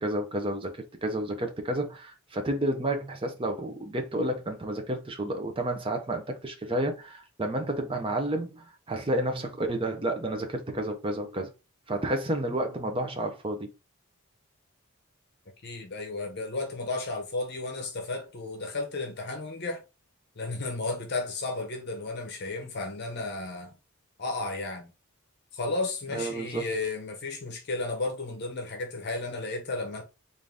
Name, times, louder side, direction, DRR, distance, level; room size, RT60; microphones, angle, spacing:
voice 1, 0.0-11.5 11.9-13.7 26.1-26.7, right 1 dB, 25° right, 0.6 m, -30 dB
voice 2, 15.6-19.8 20.4-23.7 24.2-24.9 25.5-30.0, left 3 dB, 45° left, 0.7 m, -33 dB
3.8 x 2.5 x 3.4 m
head